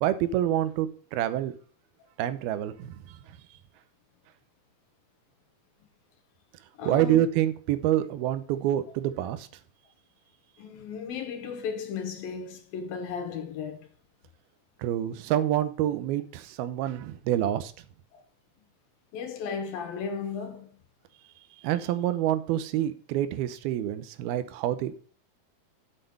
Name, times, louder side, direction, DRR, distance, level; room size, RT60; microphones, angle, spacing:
voice 1, 0.0-1.5 2.2-3.0 6.8-9.5 14.8-17.7 21.6-25.0, right 12 dB, 85° right, 2.8 m, -27 dB
voice 2, 6.8-7.3 10.6-13.9 18.1-18.2 19.1-20.8, left 6 dB, 75° left, 3.1 m, -35 dB
8.3 x 7.9 x 5.3 m
omnidirectional pair, 4.3 m